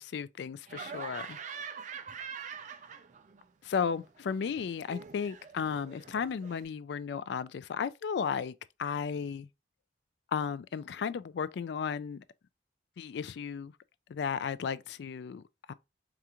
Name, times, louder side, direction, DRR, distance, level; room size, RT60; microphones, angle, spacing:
voice 1, 0.0-1.4 3.6-9.5 10.3-12.2 13.0-13.7 14.1-15.7, left 6 dB, 65° left, 0.3 m, -34 dB
Laughter, 0.7-3.4 3.7-6.6, right 6 dB, 40° right, 0.4 m, -44 dB
4.8 x 2.4 x 2.8 m
head